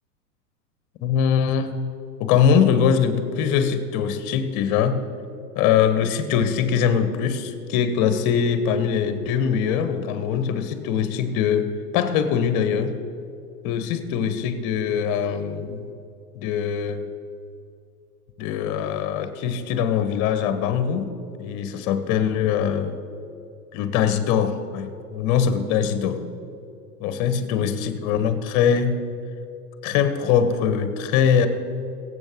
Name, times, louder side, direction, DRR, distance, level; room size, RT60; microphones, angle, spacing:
voice 1, 1.0-1.8 2.2-5.0 5.5-12.9 13.6-15.9 16.3-17.0 18.4-21.1 21.4-23.0 23.7-26.2 27.0-29.0 29.8-31.5, left 7 dB, 40° left, 10 dB, 1.3 m, -22 dB
22.5 x 8.0 x 3.8 m, 2.6 s
figure-of-eight pair, 90°, 48 cm